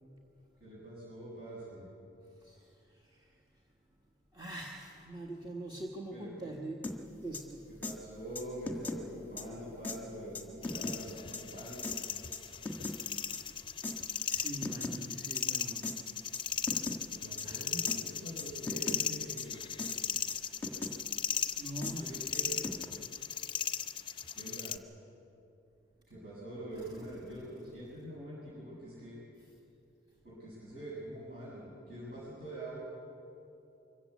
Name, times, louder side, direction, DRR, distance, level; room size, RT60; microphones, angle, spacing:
voice 1, 0.6-1.9 6.1-6.5 7.8-11.9 17.1-19.6 22.0-22.6 24.3-24.8 26.1-29.1 30.2-32.8, right 1 dB, 50° right, -9 dB, 7.0 m, -44 dB
voice 2, 2.2-3.7 4.3-6.9 7.2-7.7 12.5-13.7 14.2-16.1 17.4-17.8 18.1-18.2 20.1-20.6 21.6-22.7 23.3-23.4 24.0-24.3 26.8-27.5 29.4-29.6, right 1 dB, 25° right, -1 dB, 1.5 m, -45 dB
sound 1, 6.8-7.0 7.3-7.4 7.8-7.9 8.3-9.0 9.4-9.5 9.8-10.0 10.3-11.0 11.3-11.4 11.8-12.0 12.3-13.0 13.3-13.4 13.8-13.9 14.3-15.0 15.3-15.4 15.8-16.0 16.3-16.4 16.7-17.0 17.4-17.5 17.9-18.0 18.4-19.0 19.4-19.5 19.8-20.0 20.3-20.9 21.4-21.5 21.8-21.9 22.3-22.8, left 3 dB, 10° left, 1.5 m, -38 dB
sound 2, 10.6-24.8, left 8 dB, 25° left, 0.6 m, -37 dB
25.0 x 15.0 x 8.4 m, 2.7 s
head